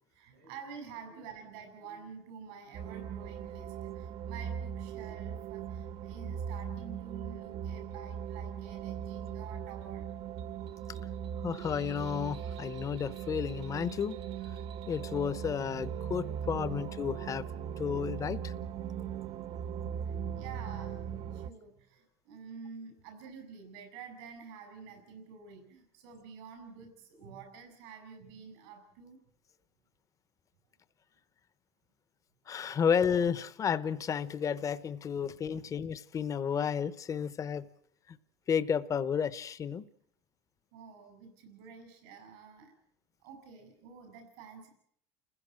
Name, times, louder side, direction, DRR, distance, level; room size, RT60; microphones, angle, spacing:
voice 1, 0.1-10.4 19.1-19.2 19.6-21.1 21.3-29.2 35.5-35.8 40.7-42.7 43.2-44.7, right 6 dB, 85° right, 6 dB, 5.9 m, -49 dB
sound 1, 2.7-21.5, right 8 dB, 45° right, 1.1 m, -39 dB
voice 2, 11.4-14.2 14.9-17.4 17.8-18.5 32.5-37.7 38.1-38.2 38.5-39.8, left 7 dB, 25° left, 15 dB, 0.9 m, -32 dB
30.0 x 16.0 x 7.6 m, 0.66 s
cardioid pair, 145°, 13 cm